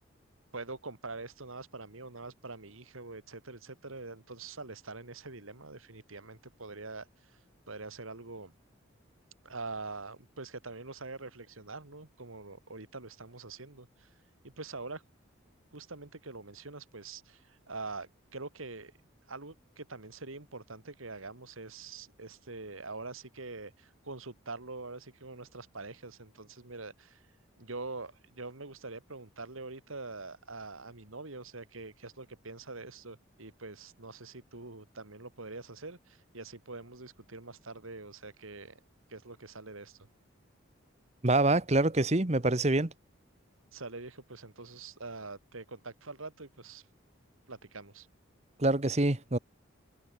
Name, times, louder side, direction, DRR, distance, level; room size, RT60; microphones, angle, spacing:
voice 1, 0.5-7.3 7.7-8.5 9.4-14.1 14.4-15.0 15.7-18.9 19.3-27.2 27.6-38.8 39.1-40.1 43.7-46.8 47.5-48.1, right 3 dB, 85° right, 2.7 m, -44 dB
voice 2, 41.2-42.9 48.6-49.4, right 2 dB, 30° right, 1.1 m, -26 dB
head